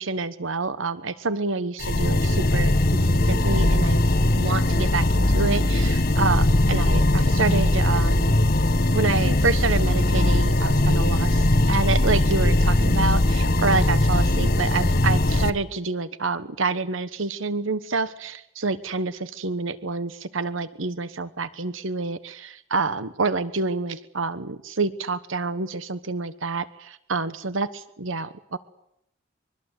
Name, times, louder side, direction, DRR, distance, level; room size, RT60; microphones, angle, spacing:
voice 1, 0.0-4.1 4.3-8.4 8.9-28.6, right 3 dB, 80° right, 14 dB, 1.2 m, -28 dB
sound 1, 1.8-15.5, left 1 dB, 45° left, 1.4 m, -20 dB
24.5 x 23.5 x 8.3 m, 0.76 s
head